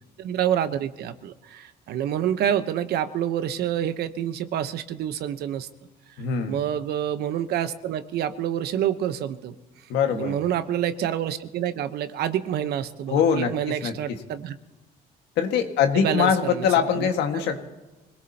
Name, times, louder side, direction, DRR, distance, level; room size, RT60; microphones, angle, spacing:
voice 1, 0.2-5.7 6.5-9.5 10.1-14.5 15.9-16.7 16.9-17.4, right 10 dB, 70° right, 11 dB, 1.0 m, -27 dB
voice 2, 6.2-6.6 9.9-10.4 13.1-14.2 15.4-17.7, left 7 dB, 85° left, 5 dB, 1.8 m, -23 dB
24.5 x 18.0 x 2.9 m, 1.1 s
cardioid pair, 110°, 17 cm